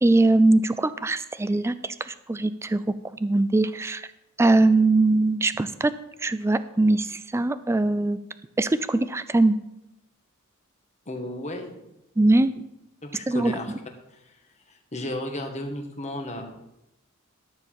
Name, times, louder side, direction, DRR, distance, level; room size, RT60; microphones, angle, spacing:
voice 1, 0.0-2.8 3.2-4.1 4.4-5.9 6.2-8.2 8.6-9.6 12.2-12.5 13.3-13.5, right 2 dB, 15° right, 13 dB, 0.4 m, -21 dB
voice 2, 11.1-11.8 12.4-12.5 13.0-13.7 14.9-16.4, left 1 dB, 35° left, 3 dB, 1.5 m, -33 dB
13.0 x 4.5 x 7.3 m, 0.90 s
head